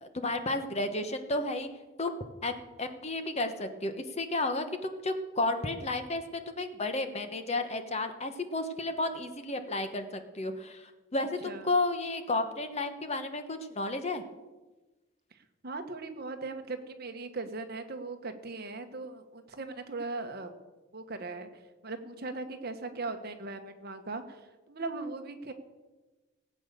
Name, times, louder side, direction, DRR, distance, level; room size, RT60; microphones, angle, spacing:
voice 1, 0.0-1.7 2.0-14.2, left 2 dB, 30° left, 8 dB, 1.1 m, -32 dB
voice 2, 15.6-20.5 20.9-21.5 21.8-24.4 24.7-25.5, right 3 dB, 50° right, 7 dB, 1.4 m, -39 dB
18.5 x 8.5 x 6.9 m, 1.2 s
head